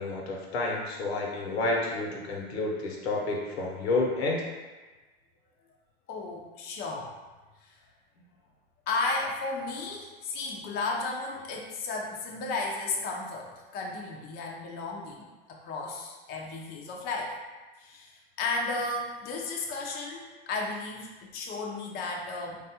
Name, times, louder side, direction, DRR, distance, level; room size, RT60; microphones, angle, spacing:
voice 1, 0.0-4.5, left 2 dB, 80° left, -1 dB, 0.8 m, -30 dB
voice 2, 6.1-7.1 7.6-7.7 8.9-17.3 17.8-22.6, left 3 dB, 30° left, -1 dB, 0.5 m, -34 dB
3.3 x 2.3 x 2.8 m, 1.2 s
hypercardioid pair, 105°, 31 cm